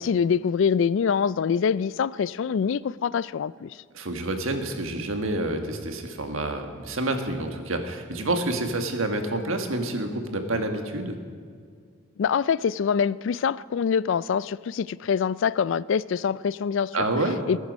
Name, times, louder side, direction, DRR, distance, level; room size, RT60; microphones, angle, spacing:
voice 1, 0.0-3.7 12.2-17.0 17.5-17.6, left 6 dB, 65° left, 0.3 m, -24 dB
voice 2, 3.9-11.2 16.9-17.4, right 2 dB, 75° right, 1.6 m, -28 dB
21.0 x 10.0 x 5.3 m
head